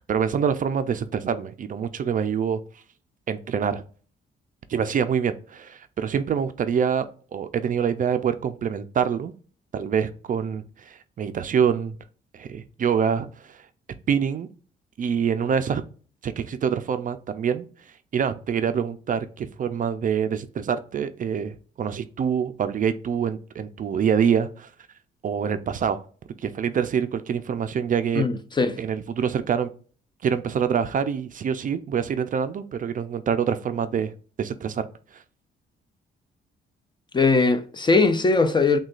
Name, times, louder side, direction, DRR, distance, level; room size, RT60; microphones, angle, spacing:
voice 1, 0.1-2.8 3.3-3.8 4.7-7.1 7.3-9.3 9.7-12.0 12.3-13.7 14.1-14.5 15.0-15.8 16.2-24.7 25.2-26.0 26.4-28.2 28.8-29.7 30.2-34.1 34.4-34.9 35.1-35.2, right 7 dB, 40° right, 0.4 m, -25 dB
voice 2, 28.2-28.8 37.1-38.8, left 3 dB, 25° left, 0.5 m, -20 dB
6.1 x 2.3 x 2.4 m
cardioid pair, 90°, 20 cm